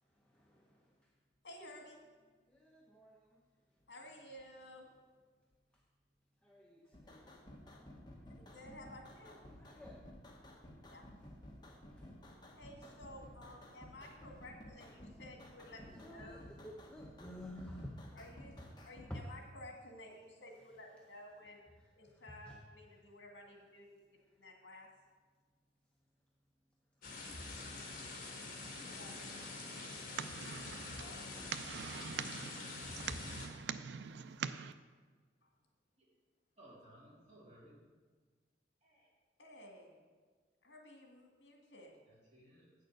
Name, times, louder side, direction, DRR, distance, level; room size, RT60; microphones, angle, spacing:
voice 1, 1.4-2.0 3.9-4.9 8.3-9.4 10.9-11.1 12.5-16.5 18.1-18.5 18.9-21.6 21.9-24.0 24.4-24.9 28.0-28.1 28.6-32.6 35.4-35.5 37.3-37.4 39.4-40.0 40.6-42.0, left 1 dB, 70° left, 1 dB, 1.9 m, -55 dB
voice 2, 2.5-3.2 6.4-7.3 7.8-8.0 9.7-10.1 12.0-12.2 16.0-16.4 16.6-18.1 19.1-19.2, equal, 5° left, -1 dB, 0.7 m, -50 dB
sound 1, 6.9-19.1, left 1 dB, 25° left, 1.2 m, -55 dB
sound 2, 27.0-33.5, left 3 dB, 50° left, 1.9 m, -46 dB
sound 3, 29.7-34.7, right 7 dB, 70° right, 0.4 m, -44 dB
voice 3, 36.6-37.7 38.8-39.1 42.1-42.7, right 1 dB, 40° right, -6 dB, 3.3 m, -60 dB
8.7 x 6.7 x 6.5 m, 1.5 s
head